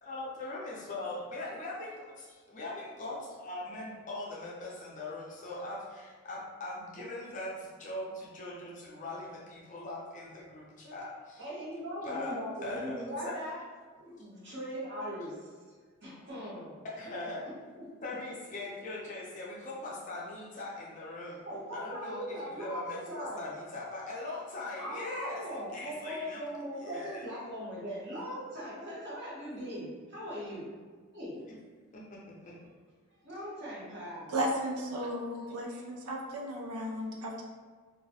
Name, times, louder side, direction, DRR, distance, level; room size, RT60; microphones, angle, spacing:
voice 1, 0.0-11.5 12.0-12.3 12.6-13.4 14.2-14.3 16.8-17.5 18.0-21.4 21.7-26.4 26.8-27.2 31.9-32.6, left 2 dB, 35° left, -4 dB, 0.4 m, -41 dB
voice 2, 11.4-13.6 13.9-15.6 16.0-16.8 21.4-23.5 24.8-30.7 31.1-31.4 33.2-34.5, equal, 50° right, -8 dB, 0.9 m, -40 dB
voice 3, 34.3-37.4, equal, 80° right, -1 dB, 0.4 m, -34 dB
2.2 x 2.1 x 2.7 m, 1.5 s
head